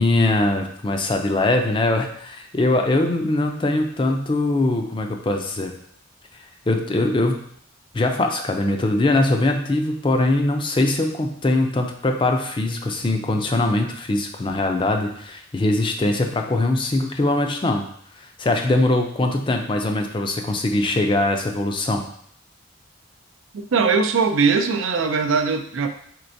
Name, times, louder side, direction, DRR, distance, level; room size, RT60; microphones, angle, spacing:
voice 1, 0.0-5.7 6.3-7.4 7.9-17.9 18.2-22.0, left 2 dB, 25° left, 4 dB, 0.4 m, -22 dB
voice 2, 23.5-25.9, right 5 dB, 75° right, 7 dB, 0.5 m, -20 dB
4.5 x 4.1 x 2.6 m, 0.64 s
head